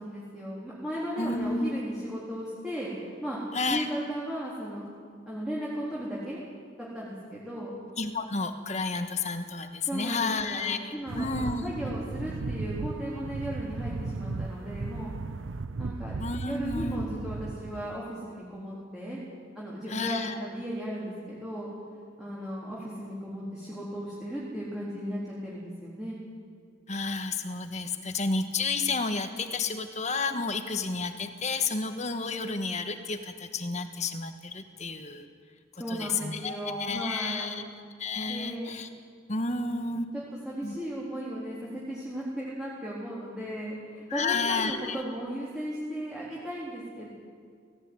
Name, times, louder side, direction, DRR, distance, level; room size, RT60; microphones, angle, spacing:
voice 1, 0.0-3.4 3.7-4.8 5.3-6.4 6.8-7.7 9.9-15.1 15.8-16.1 16.5-19.2 19.5-21.7 22.2-26.2 35.7-37.6 38.3-38.7 39.5-40.0 40.4-47.1, equal, 5° right, -8 dB, 3.8 m, -36 dB
voice 2, 1.2-1.8 3.5-3.9 8.0-11.6 16.2-17.1 19.9-20.4 26.9-35.3 35.9-37.6 38.0-38.9 39.3-40.0 40.6-40.8 44.1-45.0, left 4 dB, 35° left, 8 dB, 1.4 m, -31 dB
sound 1, 11.1-18.0, right 3 dB, 85° right, 0.6 m, -36 dB
18.0 x 16.5 x 9.7 m, 2.1 s
head